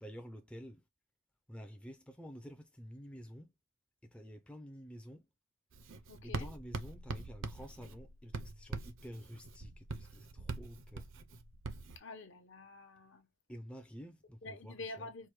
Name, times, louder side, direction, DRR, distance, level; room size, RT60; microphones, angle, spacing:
voice 1, 0.0-0.8 1.5-3.5 4.0-5.3 6.2-11.1 13.5-15.1, equal, 5° left, 0.4 m, -50 dB
Writing, 5.7-12.0, right 3 dB, 65° right, 0.6 m, -44 dB
voice 2, 6.1-6.5 12.0-13.3 14.4-15.3, left 3 dB, 60° left, 0.9 m, -47 dB
4.6 x 2.2 x 3.0 m
head